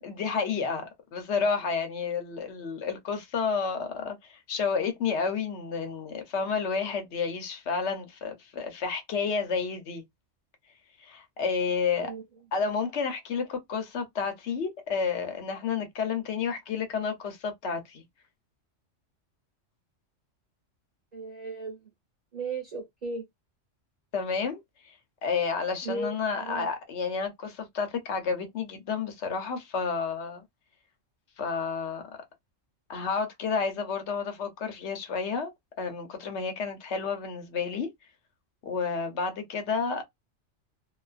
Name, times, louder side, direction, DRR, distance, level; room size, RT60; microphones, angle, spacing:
voice 1, 0.0-10.0 11.0-12.1 12.5-18.0 24.1-25.0 25.2-30.4 31.4-32.2 32.9-35.5 35.8-37.9 38.6-40.0, left 5 dB, 65° left, 1.0 m, -30 dB
voice 2, 21.1-21.8 22.3-23.2 25.8-26.7, right 3 dB, 40° right, 1.0 m, -36 dB
2.5 x 2.3 x 2.4 m
omnidirectional pair, 1.3 m